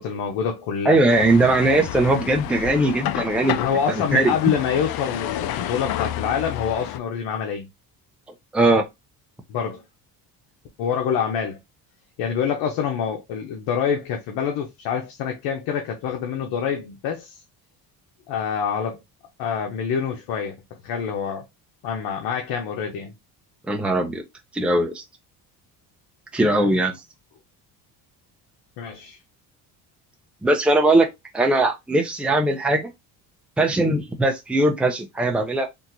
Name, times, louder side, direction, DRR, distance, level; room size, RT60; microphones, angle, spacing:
voice 1, 0.0-1.0 3.5-7.7 9.5-9.8 10.8-11.6 12.2-17.4 18.3-19.0 19.4-20.5 20.8-21.5 21.8-23.1 26.5-26.8 28.8-29.2, left 7 dB, 85° left, 0.9 m, -26 dB
voice 2, 0.9-3.6 4.1-4.3 8.5-8.8 23.7-24.2 24.5-25.0 26.3-26.9 30.4-31.1 31.3-32.9 33.6-35.7, right 2 dB, 5° right, 0.6 m, -20 dB
sound 1, 1.1-7.0, left 12 dB, 65° left, 0.5 m, -30 dB
3.5 x 2.6 x 2.8 m
cardioid pair, 120°, 39 cm